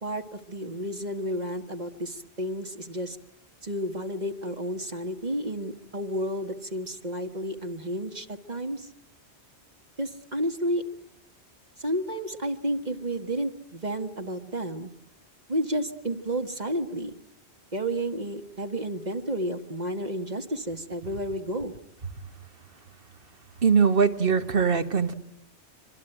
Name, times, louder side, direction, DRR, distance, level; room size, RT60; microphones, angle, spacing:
voice 1, 0.0-3.2 3.6-8.9 10.0-10.8 11.8-14.9 15.5-17.1 17.7-21.7, right 1 dB, 40° right, 5 dB, 1.7 m, -31 dB
voice 2, 23.6-25.1, right 6 dB, 55° right, 10 dB, 1.6 m, -21 dB
26.0 x 24.5 x 9.1 m, 0.81 s
omnidirectional pair, 1.1 m